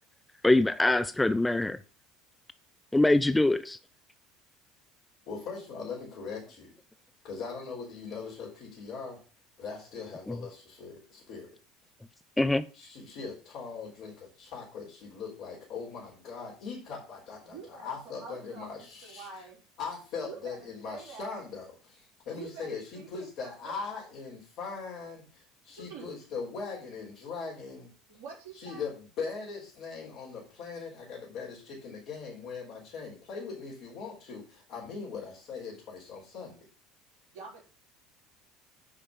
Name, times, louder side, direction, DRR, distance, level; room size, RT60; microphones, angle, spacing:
voice 1, 0.4-1.8 2.9-3.8 10.3-10.4 12.4-12.6, left 2 dB, 10° left, 13 dB, 0.6 m, -23 dB
voice 2, 5.3-6.7 7.2-9.2 9.6-11.6 12.7-19.4 19.8-27.9 28.5-36.7, left 5 dB, 60° left, -4 dB, 4.3 m, -40 dB
voice 3, 17.4-19.6 20.2-21.4 22.3-23.7 25.8-26.2 28.1-28.8 31.9-32.0 37.3-37.6, right 5 dB, 55° right, -7 dB, 4.0 m, -47 dB
10.0 x 5.2 x 6.6 m, 0.34 s
hypercardioid pair, 70°, 0 cm